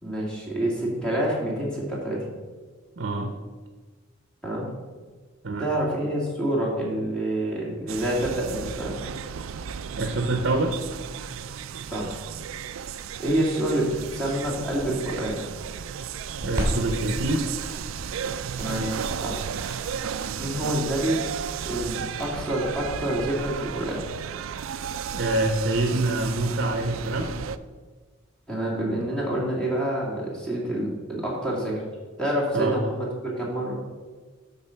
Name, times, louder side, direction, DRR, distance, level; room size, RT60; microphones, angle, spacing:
voice 1, 0.0-2.2 4.4-4.7 5.6-9.0 11.9-12.2 13.2-15.4 18.6-18.9 19.2-19.5 20.4-21.2 21.6-24.0 28.5-31.8 32.2-33.8, right 1 dB, 5° left, -5 dB, 2.4 m, -27 dB
voice 2, 3.0-3.3 5.4-5.6 10.0-10.8 16.4-17.5 25.1-27.3 32.5-32.8, right 2 dB, 55° right, 5 dB, 0.9 m, -25 dB
sound 1, 7.9-27.6, right 7 dB, 85° right, 0.4 m, -34 dB
Crackle, 16.4-23.7, equal, 20° right, 2.7 m, -37 dB
12.0 x 4.2 x 5.8 m, 1.4 s
head